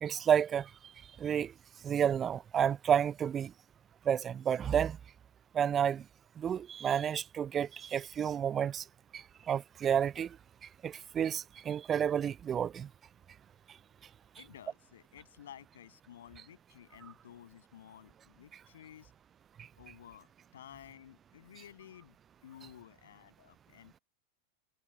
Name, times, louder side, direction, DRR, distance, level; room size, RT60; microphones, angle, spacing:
voice 1, 0.0-0.7 1.2-1.5 1.8-3.5 4.1-5.0 5.5-6.0 6.4-8.8 9.1-10.4 10.8-12.9, right 8 dB, 25° right, 0.3 m, -30 dB
voice 2, 14.4-19.1 19.8-22.2 22.4-24.0, left 10 dB, 60° left, 7.7 m, -54 dB
figure-of-eight pair, 90°, 0 cm